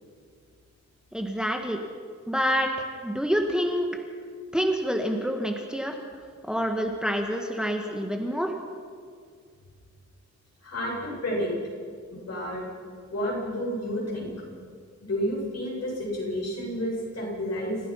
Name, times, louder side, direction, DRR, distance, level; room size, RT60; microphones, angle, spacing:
voice 1, 1.1-1.8 2.3-3.9 4.5-6.0 6.4-8.5, equal, 5° right, 3 dB, 1.6 m, -27 dB
voice 2, 10.6-11.5 12.1-12.6 13.1-14.3 15.0-17.8, equal, 60° left, -3 dB, 7.8 m, -30 dB
30.0 x 16.0 x 5.8 m, 2.1 s
wide cardioid pair, 135°, 29 cm